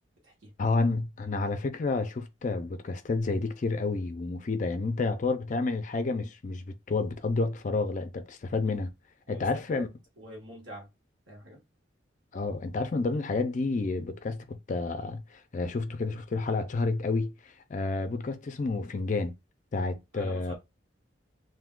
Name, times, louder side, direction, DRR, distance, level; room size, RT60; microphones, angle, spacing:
voice 1, 0.6-8.9 9.3-9.9 12.3-19.3 19.7-20.5, left 3 dB, 40° left, 0.4 m, -30 dB
voice 2, 9.3-9.9 10.2-10.9 11.3-11.6 20.1-20.5, equal, 90° right, 1.2 m, -45 dB
2.6 x 2.3 x 3.6 m
head